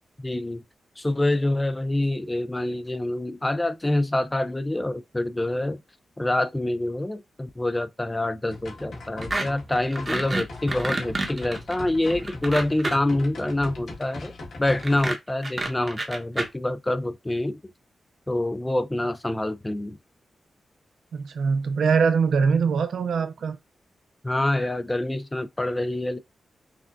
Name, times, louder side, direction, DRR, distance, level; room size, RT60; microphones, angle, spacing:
voice 1, 0.2-0.6 1.0-5.8 6.2-14.3 14.6-17.6 18.3-20.0 24.2-26.2, left 1 dB, 15° left, 0.4 m, -26 dB
sound 1, 8.5-15.0, left 2 dB, 80° left, 1.5 m, -39 dB
sound 2, 9.2-9.5 9.7-13.2 14.6-16.5, right 2 dB, 35° right, 1.0 m, -28 dB
voice 2, 21.1-23.6, right 5 dB, 90° right, 0.5 m, -22 dB
5.8 x 2.3 x 2.5 m
cardioid pair, 85°, 0 cm